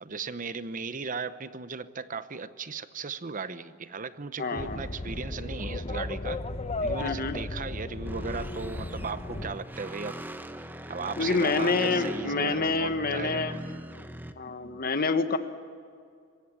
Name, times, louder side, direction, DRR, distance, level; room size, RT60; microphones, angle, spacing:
voice 1, 0.0-6.4 6.8-10.2 10.6-13.6, right 4 dB, 40° right, 13 dB, 0.9 m, -37 dB
voice 2, 4.4-4.8 7.0-7.3 11.2-13.5 14.4-15.4, left 4 dB, 50° left, 9 dB, 1.3 m, -27 dB
sound 1, 4.6-9.6, left 2 dB, 30° left, 0.9 m, -35 dB
sound 2, 8.0-14.3, right 1 dB, 10° right, 0.9 m, -39 dB
26.5 x 16.0 x 9.9 m, 2.2 s
head